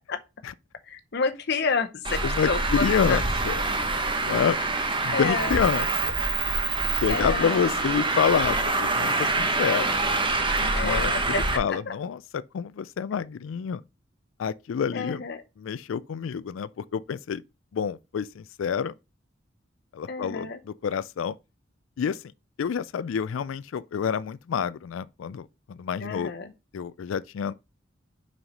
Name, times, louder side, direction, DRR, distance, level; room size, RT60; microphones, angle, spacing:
voice 1, 0.8-3.2 5.1-5.6 7.1-7.7 10.7-11.9 14.9-15.4 20.1-20.6 26.0-26.5, left 4 dB, 60° left, 0.8 m, -30 dB
Traffic noise roadway noise, 2.0-11.6, right 3 dB, 25° right, 1.2 m, -26 dB
voice 2, 2.2-3.5 4.2-4.6 5.0-6.2 6.9-9.9 10.6-11.1 11.6-12.2 12.5-13.8 14.4-15.2 15.6-17.4 17.7-18.9 19.9-21.4 22.0-22.2 22.6-26.3 26.7-27.5, left 7 dB, 85° left, 0.4 m, -28 dB
5.8 x 5.5 x 5.4 m
head